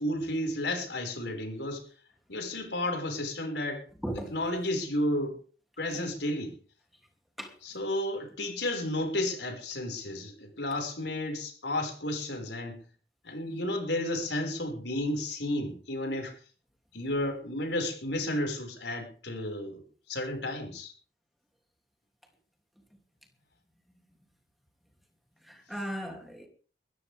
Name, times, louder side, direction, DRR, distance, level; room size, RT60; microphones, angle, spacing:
voice 1, 0.0-1.8 2.3-3.8 4.3-5.4 5.8-6.6 7.6-12.8 13.2-16.4 16.9-20.9, left 1 dB, 85° left, 5.7 m, -32 dB
voice 2, 25.5-26.5, equal, ahead, 2.9 m, -36 dB
21.5 x 14.0 x 3.6 m
head